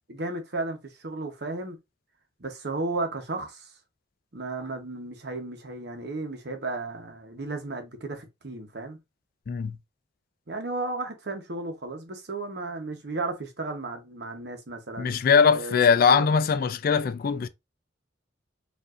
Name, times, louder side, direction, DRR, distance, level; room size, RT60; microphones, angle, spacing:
voice 1, 0.1-1.8 2.4-3.7 4.3-9.0 10.5-15.2 15.5-15.8 16.1-16.3, right 3 dB, 60° right, 0.9 m, -34 dB
voice 2, 9.5-9.8 15.0-17.5, left 6 dB, 50° left, 0.3 m, -21 dB
4.6 x 2.6 x 2.4 m
head